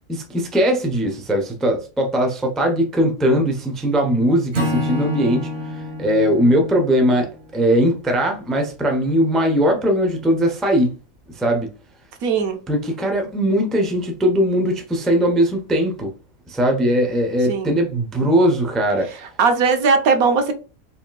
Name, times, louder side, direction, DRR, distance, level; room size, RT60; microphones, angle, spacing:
voice 1, 0.1-11.0 11.3-11.7 12.7-16.1 16.5-19.2, equal, ahead, 0.5 m, -20 dB
Acoustic guitar / Strum, 4.5-7.9, left 1 dB, 50° right, 1.6 m, -28 dB
voice 2, 12.2-12.6 17.5-17.8 19.4-20.5, right 5 dB, 80° right, 1.3 m, -18 dB
5.0 x 3.6 x 2.2 m
omnidirectional pair, 1.5 m